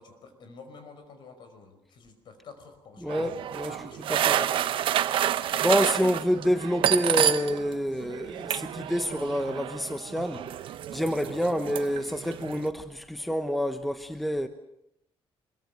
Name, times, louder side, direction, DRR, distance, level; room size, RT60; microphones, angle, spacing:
voice 1, 0.0-3.2 3.7-4.5 5.4-6.1 11.3-11.5, left 5 dB, 55° left, 5.1 m, -47 dB
voice 2, 3.0-4.6 5.6-10.4 10.9-14.5, equal, ahead, 1.0 m, -28 dB
sound 1, 3.1-7.7 8.0-12.7, right 11 dB, 65° right, 0.9 m, -29 dB
25.5 x 22.5 x 6.6 m
cardioid pair, 150°, 10 cm